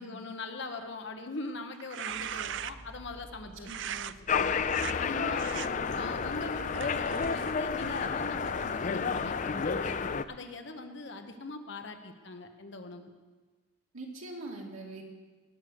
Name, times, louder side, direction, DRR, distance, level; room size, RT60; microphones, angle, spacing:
voice 1, 0.0-4.6 5.0-10.0 10.3-13.1, left 2 dB, 60° left, 6 dB, 1.1 m, -42 dB
sound 1, 1.7-3.0 3.7-4.1 4.6-4.9 5.4-5.7 6.3-8.9, right 9 dB, 60° right, 0.4 m, -40 dB
sound 2, 2.1-8.5, equal, 20° left, 5.3 m, -53 dB
sound 3, 4.3-10.2, left 5 dB, 35° left, 0.4 m, -31 dB
voice 2, 13.9-15.0, right 2 dB, 90° right, -1 dB, 2.4 m, -42 dB
18.0 x 6.4 x 7.0 m, 1.3 s
head